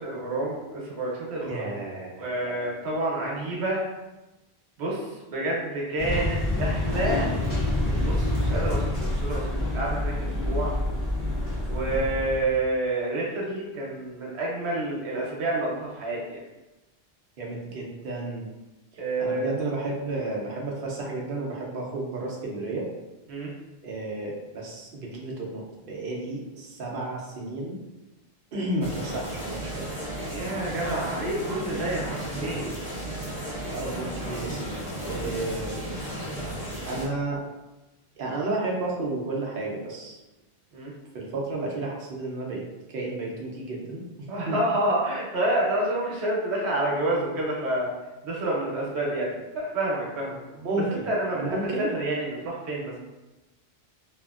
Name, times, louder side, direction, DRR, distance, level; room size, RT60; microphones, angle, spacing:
voice 1, 0.0-1.6 2.2-3.9 4.8-7.3 7.9-10.7 11.7-16.4 19.0-19.5 23.3-23.5 30.3-32.7 35.2-35.3 40.7-40.9 44.3-47.9 48.2-50.4 51.1-53.0, right 1 dB, 90° right, -3 dB, 1.0 m, -28 dB
voice 2, 1.4-2.9 6.5-7.7 11.9-12.1 17.4-18.5 19.2-22.9 23.8-27.8 28.5-29.8 33.7-34.7 35.0-35.9 36.9-37.4 38.2-40.2 41.1-44.0 44.5-44.6 50.6-51.1 51.4-51.9, right 2 dB, 60° right, -2 dB, 0.7 m, -32 dB
sound 1, 6.0-12.5, left 1 dB, 20° left, 0.4 m, -27 dB
sound 2, 28.8-37.1, right 1 dB, 80° left, 1.6 m, -34 dB
2.8 x 2.4 x 2.3 m, 1.0 s
omnidirectional pair, 1.1 m